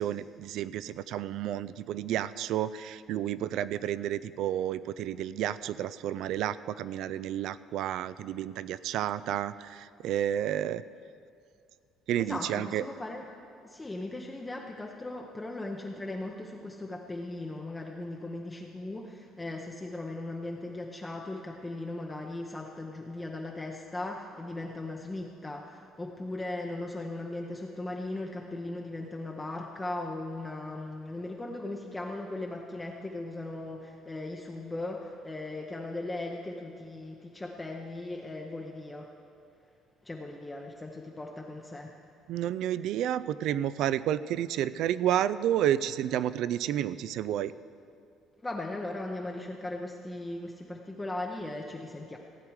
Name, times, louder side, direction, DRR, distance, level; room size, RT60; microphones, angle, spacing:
voice 1, 0.0-10.8 12.1-12.8 42.3-47.5, right 11 dB, 65° right, 16 dB, 0.3 m, -31 dB
voice 2, 12.2-13.2 13.6-39.1 40.0-41.9 48.4-52.2, left 2 dB, 10° left, 1 dB, 0.7 m, -38 dB
16.0 x 9.1 x 4.7 m, 2.4 s
cardioid pair, 155°, 0 cm